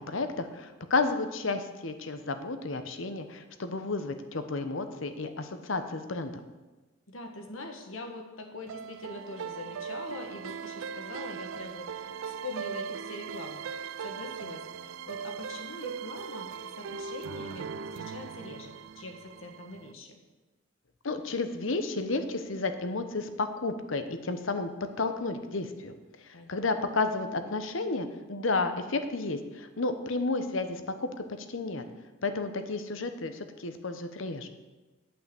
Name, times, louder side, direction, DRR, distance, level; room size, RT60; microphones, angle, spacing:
voice 1, 0.0-6.4 21.0-24.7 25.0-25.9 26.5-31.8 32.2-34.5, left 3 dB, 70° left, 8 dB, 0.9 m, -32 dB
voice 2, 7.1-16.5 16.8-20.2 26.3-26.6, left 2 dB, 90° left, 4 dB, 1.5 m, -43 dB
sound 1, 8.7-19.9, right 6 dB, 80° right, 0.4 m, -39 dB
9.1 x 5.7 x 8.1 m, 1.2 s
head